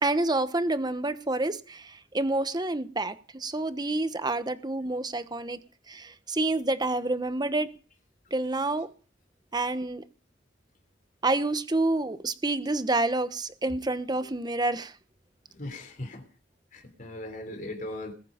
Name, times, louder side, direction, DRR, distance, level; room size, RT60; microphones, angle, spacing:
voice 1, 0.0-5.6 5.9-7.7 8.3-8.9 9.5-10.0 11.2-14.9, right 2 dB, 20° right, 12 dB, 1.0 m, -28 dB
voice 2, 15.6-16.2 16.7-18.1, left 1 dB, 45° left, 4 dB, 3.5 m, -38 dB
20.5 x 9.3 x 5.1 m, 0.39 s
head